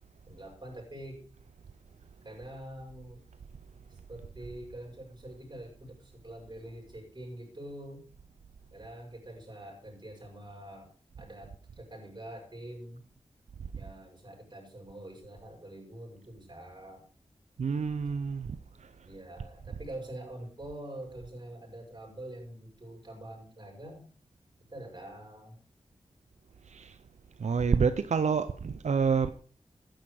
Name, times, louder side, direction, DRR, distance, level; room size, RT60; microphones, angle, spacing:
voice 1, 0.3-1.2 2.2-3.3 3.9-8.0 8.7-10.9 11.2-13.0 13.7-17.0 19.0-24.1 24.7-25.6, right 1 dB, 40° right, 6.6 m, -45 dB
voice 2, 17.6-18.5 26.7-27.0 27.4-29.3, right 5 dB, 90° right, 0.6 m, -27 dB
12.5 x 10.0 x 4.9 m
wide cardioid pair, 70°, 12 cm